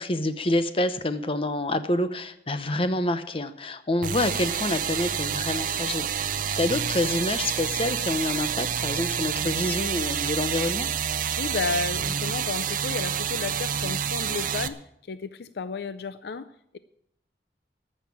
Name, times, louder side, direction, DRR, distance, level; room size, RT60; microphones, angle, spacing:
voice 1, 0.0-6.1 6.6-10.9, left 2 dB, 30° left, 11 dB, 0.8 m, -27 dB
sound 1, 4.0-14.7, right 8 dB, 50° right, 0.6 m, -28 dB
voice 2, 11.4-14.8 15.1-16.8, left 4 dB, 65° left, 13 dB, 0.5 m, -32 dB
14.0 x 6.6 x 8.6 m, 0.76 s
head